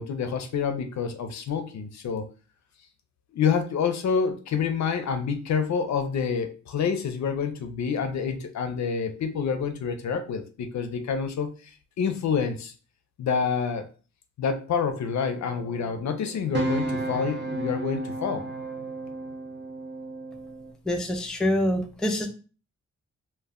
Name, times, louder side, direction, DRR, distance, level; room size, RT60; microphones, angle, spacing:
voice 1, 0.0-2.3 3.3-11.5 12.0-12.7 13.2-13.9 14.4-18.5, left 6 dB, 70° left, 8 dB, 0.5 m, -27 dB
sound 1, 15.3-20.7, right 2 dB, 40° right, 0.6 m, -33 dB
voice 2, 20.9-22.3, left 1 dB, ahead, 3 dB, 0.3 m, -25 dB
2.2 x 2.1 x 3.5 m, 0.36 s
wide cardioid pair, 140°, 29 cm